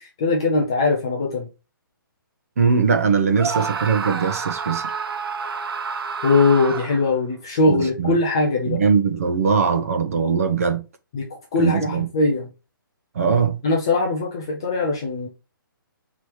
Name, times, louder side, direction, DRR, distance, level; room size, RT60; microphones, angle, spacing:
voice 1, 0.2-1.5 6.2-8.8 11.1-11.3 11.5-12.5 13.6-15.3, left 3 dB, 10° left, 0.3 m, -20 dB
voice 2, 2.6-4.9 7.7-8.2 8.6-10.8 11.6-12.1 13.1-13.6, right 5 dB, 40° right, 0.7 m, -21 dB
Screaming, 3.3-7.1, right 5 dB, 85° right, 0.6 m, -29 dB
4.5 x 3.0 x 3.2 m
hypercardioid pair, 175°, 12 cm